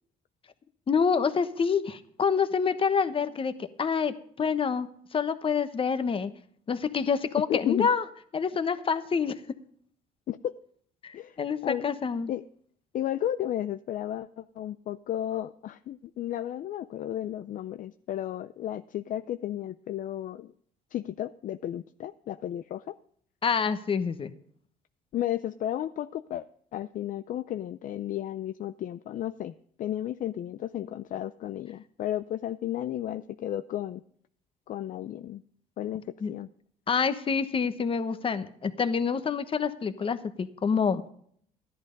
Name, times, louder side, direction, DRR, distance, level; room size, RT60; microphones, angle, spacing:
voice 1, 0.9-6.3 6.7-8.0 8.3-9.4 11.0-12.3 23.4-24.3 36.2-36.3 36.9-41.0, left 6 dB, 30° left, 11 dB, 1.1 m, -27 dB
voice 2, 7.5-7.9 10.3-10.6 11.1-11.4 11.6-11.9 12.3-12.4 12.9-20.5 20.9-23.0 25.1-34.0 34.7-35.4 35.8-36.5, left 12 dB, 50° left, 12 dB, 0.5 m, -33 dB
14.0 x 11.0 x 5.2 m, 0.62 s
cardioid pair, 110°, 17 cm